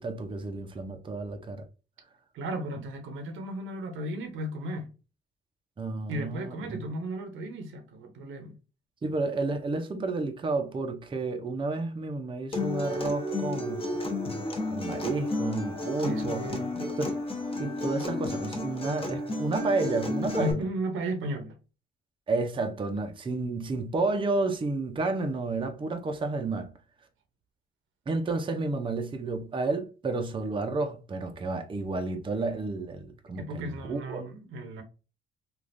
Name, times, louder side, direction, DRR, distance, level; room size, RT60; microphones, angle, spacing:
voice 1, 0.0-1.7 5.8-6.8 9.0-13.9 14.7-16.5 16.8-17.1 17.6-20.6 22.3-26.7 28.1-34.2, right 3 dB, 25° right, 0.6 m, -31 dB
voice 2, 2.3-4.9 6.1-8.6 16.0-16.9 20.4-21.6 33.4-34.8, right 1 dB, 80° right, 0.8 m, -35 dB
Acoustic guitar, 12.5-20.5, left 2 dB, 30° left, 0.9 m, -32 dB
3.4 x 2.4 x 2.5 m
cardioid pair, 90°, 20 cm